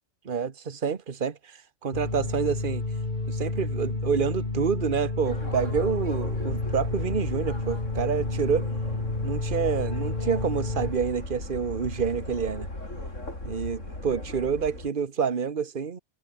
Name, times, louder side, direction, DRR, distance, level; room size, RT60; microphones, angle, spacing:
voice 1, 0.2-2.8 3.3-8.6 9.2-12.7 13.4-16.0, right 6 dB, 40° right, 1.4 m, -28 dB
sound 1, 1.9-10.9, left 2 dB, 35° left, 2.7 m, -31 dB
sound 2, 5.2-14.9, left 1 dB, 70° left, 7.3 m, -37 dB
omnidirectional pair, 1.3 m